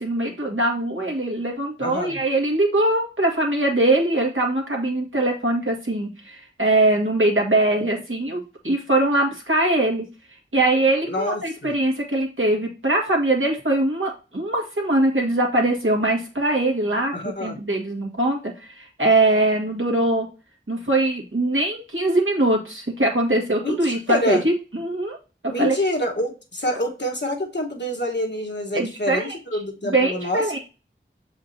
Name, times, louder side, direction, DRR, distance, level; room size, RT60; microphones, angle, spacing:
voice 1, 0.0-10.1 10.5-20.3 20.7-25.2 25.6-25.8 28.7-29.4 29.8-30.6, right 2 dB, 75° right, -1 dB, 2.0 m, -22 dB
voice 2, 1.8-2.2 11.0-11.7 17.1-17.6 23.6-24.4 25.5-30.6, left 1 dB, 60° left, 0 dB, 1.4 m, -27 dB
6.8 x 4.9 x 2.8 m, 0.32 s
wide cardioid pair, 40°, 21 cm